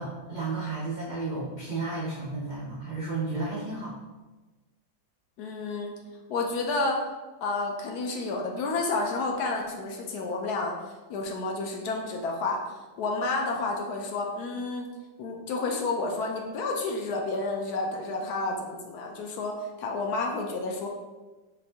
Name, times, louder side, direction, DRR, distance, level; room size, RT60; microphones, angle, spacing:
voice 1, 0.0-3.9, right 3 dB, 80° right, -7 dB, 0.4 m, -32 dB
voice 2, 5.4-5.9 6.3-7.0 7.4-10.7 11.1-12.6 13.0-14.9 15.2-20.9, left 3 dB, 70° left, 1 dB, 1.0 m, -30 dB
4.7 x 2.6 x 3.3 m, 1.2 s
omnidirectional pair, 2.0 m